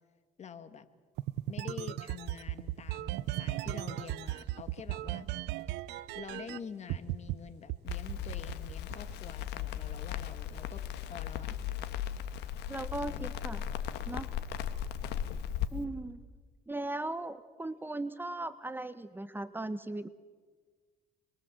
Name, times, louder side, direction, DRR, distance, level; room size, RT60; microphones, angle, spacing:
voice 1, 0.4-0.9 1.5-5.3 6.1-11.6 13.1-13.3, left 7 dB, 40° left, 10 dB, 1.8 m, -47 dB
sound 1, 1.2-6.6 6.9-7.3 7.7-9.1, right 15 dB, 85° right, 0.7 m, -36 dB
Crackle, 7.9-15.7, left 10 dB, 85° left, 1.5 m, -37 dB
voice 2, 12.7-13.6 14.1-14.3 15.7-16.2 16.7-20.1, right 2 dB, 10° right, 12 dB, 0.9 m, -38 dB
27.0 x 22.0 x 7.7 m, 1.4 s
cardioid pair, 110°, 17 cm